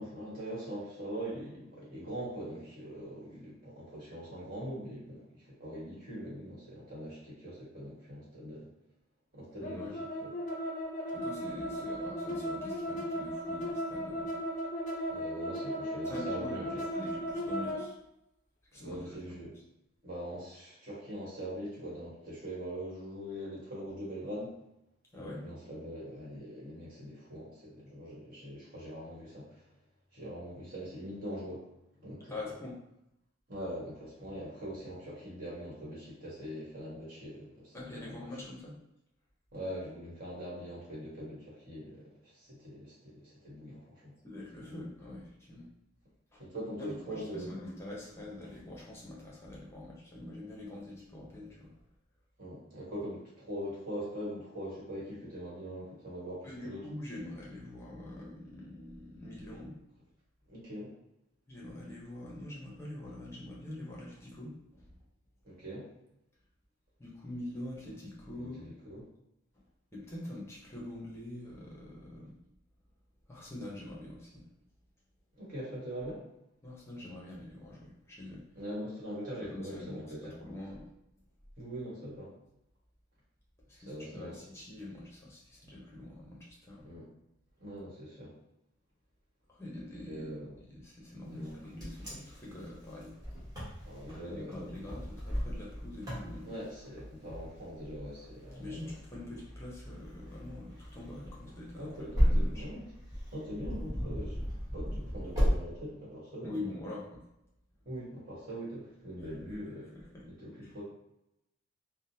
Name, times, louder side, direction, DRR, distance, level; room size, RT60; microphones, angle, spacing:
voice 1, 0.0-8.7 9.3-10.3 15.1-16.7 18.7-19.5 20.0-24.6 25.1-29.7 30.1-31.7 32.0-32.3 33.5-38.3 39.5-44.1 44.6-44.8 46.4-47.5 52.4-56.8 60.5-60.9 65.4-65.9 68.3-69.0 75.4-76.2 78.5-80.3 81.6-82.3 83.9-84.3 86.8-87.1 87.6-88.3 90.1-90.6 91.2-91.5 93.8-94.7 96.5-98.9 101.8-102.9 103.3-106.5 107.8-110.0 110.2-110.8, equal, 45° right, -7 dB, 1.5 m, -42 dB
sound 1, 9.6-17.9, equal, 35° left, 0.5 m, -36 dB
voice 2, 9.6-10.0 11.1-14.3 16.0-18.0 18.7-19.5 25.1-25.4 32.3-32.8 37.7-38.7 44.2-45.7 46.3-46.4 46.8-51.7 56.4-59.7 61.5-65.0 67.0-68.7 69.9-72.4 73.3-74.5 76.6-78.5 79.5-80.9 83.7-86.9 89.5-93.1 94.2-96.5 98.6-102.7 106.4-107.2 109.9-110.2 110.6-110.7, left 1 dB, 15° left, -4 dB, 0.8 m, -44 dB
Wind, 91.4-105.6, equal, 20° right, 1.2 m, -35 dB
3.7 x 2.1 x 2.7 m, 0.84 s
head